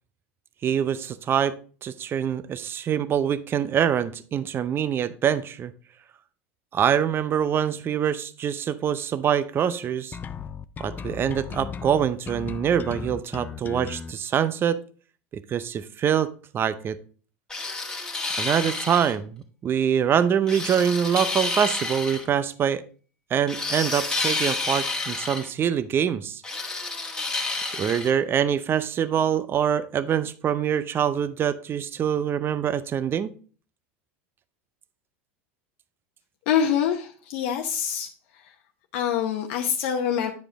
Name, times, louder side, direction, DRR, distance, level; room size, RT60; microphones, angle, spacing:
voice 1, 0.6-1.5 1.8-5.7 6.7-10.2 10.8-14.8 15.3-17.0 18.4-22.8 23.3-26.4 27.7-33.3, right 8 dB, 35° right, 15 dB, 0.6 m, -24 dB
sound 1, 10.1-14.1, left 7 dB, 25° left, 0.5 m, -36 dB
sound 2, 17.5-19.1 20.5-22.2 23.5-25.5 26.4-28.1, left 3 dB, 10° left, 1.7 m, -29 dB
voice 2, 36.5-38.1 38.9-40.3, left 8 dB, 65° left, 3 dB, 0.8 m, -25 dB
9.4 x 4.9 x 3.6 m, 0.39 s
hypercardioid pair, 95°, 7 cm